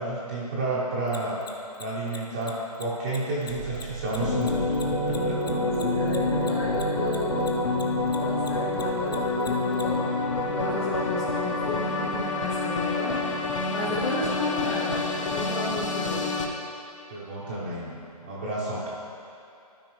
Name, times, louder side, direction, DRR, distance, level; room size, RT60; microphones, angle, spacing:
voice 1, 0.0-5.5 17.1-17.9 18.2-18.9, right 2 dB, 15° right, -8 dB, 0.5 m, -31 dB
Mechanisms, 1.1-7.8 8.1-9.8, left 5 dB, 90° left, 0.9 m, -42 dB
sound 1, 3.5-14.9, right 8 dB, 60° right, 0.5 m, -38 dB
sound 2, 4.2-16.5, left 3 dB, 50° left, 0.9 m, -28 dB
voice 2, 5.3-7.6 8.1-10.0 10.5-13.2 13.7-16.3, left 2 dB, 20° left, -10 dB, 0.9 m, -33 dB
12.5 x 5.1 x 3.0 m, 2.7 s
hypercardioid pair, 170°, 20 cm